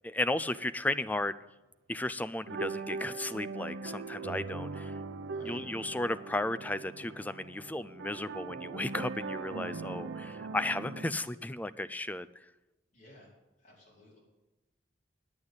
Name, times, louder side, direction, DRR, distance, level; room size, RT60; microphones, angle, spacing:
voice 1, 0.0-1.4 1.9-5.0 5.4-12.3, left 2 dB, 10° left, 14 dB, 0.3 m, -34 dB
sound 1, 2.5-11.1, right 3 dB, 90° right, 0.7 m, -40 dB
voice 2, 5.2-5.6 12.9-13.3 13.6-14.2, left 1 dB, 45° left, -5 dB, 4.9 m, -56 dB
9.6 x 8.7 x 8.1 m, 1.0 s
head